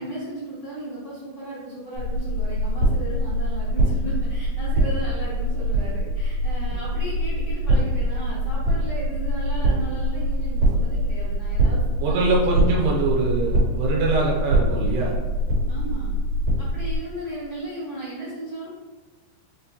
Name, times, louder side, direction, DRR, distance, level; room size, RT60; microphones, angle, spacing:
voice 1, 0.0-12.7 15.7-16.1 16.6-18.7, right 1 dB, 65° left, -13 dB, 1.6 m, -35 dB
sound 1, 2.0-17.0, right 1 dB, 55° right, 2.4 m, -23 dB
voice 2, 12.0-15.1, right 3 dB, 85° right, -2 dB, 2.9 m, -23 dB
6.4 x 2.2 x 2.8 m, 1.3 s
omnidirectional pair, 4.7 m